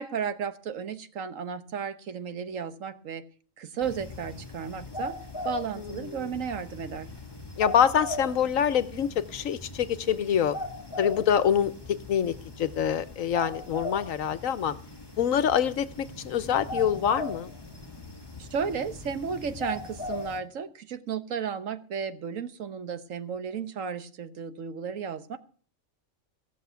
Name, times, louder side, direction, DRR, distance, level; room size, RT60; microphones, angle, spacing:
voice 1, 0.0-3.2 3.6-5.1 5.4-7.1 18.4-25.4, right 6 dB, 75° right, 11 dB, 1.5 m, -34 dB
sound 1, 3.8-20.4, left 2 dB, 20° left, 1.7 m, -39 dB
voice 2, 5.8-6.1 7.6-10.6 11.0-14.7 15.2-17.5, left 8 dB, 80° left, 15 dB, 1.3 m, -26 dB
16.5 x 7.2 x 6.9 m, 0.43 s
omnidirectional pair, 1.4 m